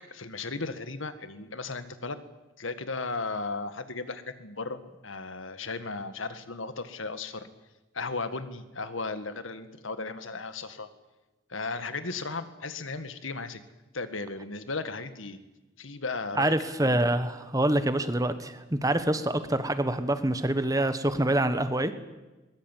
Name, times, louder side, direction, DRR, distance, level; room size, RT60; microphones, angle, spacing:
voice 1, 0.1-2.2 2.6-7.5 7.9-10.9 11.5-13.6 13.9-15.4 15.8-16.6 16.8-17.1, left 3 dB, 85° left, 11 dB, 1.9 m, -35 dB
voice 2, 16.4-21.9, right 1 dB, 15° right, 10 dB, 1.3 m, -26 dB
21.5 x 21.0 x 9.3 m, 1.1 s
head